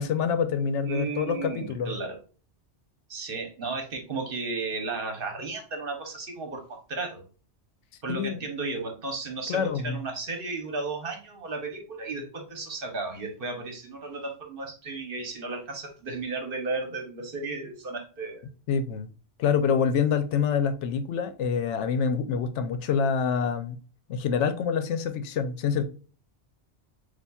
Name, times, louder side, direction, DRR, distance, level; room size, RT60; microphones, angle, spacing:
voice 1, 0.0-1.9 8.1-8.4 9.5-10.0 18.7-19.1 19.4-23.8 24.1-25.8, left 6 dB, 85° left, 0.9 m, -26 dB
voice 2, 0.8-2.2 3.1-7.2 8.0-18.4, right 3 dB, 55° right, 1.1 m, -34 dB
6.9 x 2.5 x 2.3 m
omnidirectional pair, 1.2 m